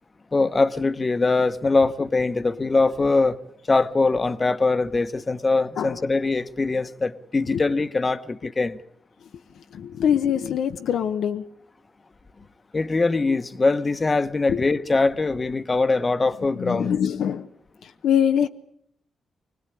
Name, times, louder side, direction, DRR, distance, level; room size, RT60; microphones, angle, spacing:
voice 1, 0.3-3.4 3.7-8.8 12.7-16.9, left 3 dB, 25° left, 1.1 m, -22 dB
voice 2, 9.5-11.5 14.5-14.7 16.5-17.5 17.8-18.5, left 9 dB, 85° left, 1.0 m, -24 dB
25.5 x 19.0 x 9.9 m
wide cardioid pair, 135°, 0 cm